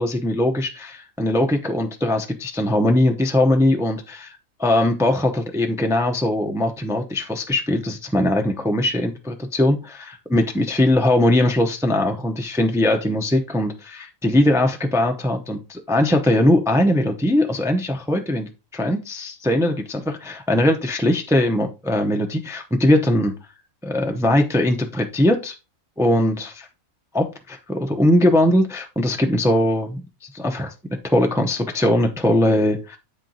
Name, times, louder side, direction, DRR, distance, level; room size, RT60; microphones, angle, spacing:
voice 1, 0.0-4.3 4.6-9.9 10.3-23.3 23.8-25.5 26.0-26.7 27.1-27.3 27.7-30.0 30.3-30.7 31.0-33.0, left 1 dB, 5° right, 0.7 m, -20 dB
8.2 x 4.5 x 3.9 m
omnidirectional pair, 1.4 m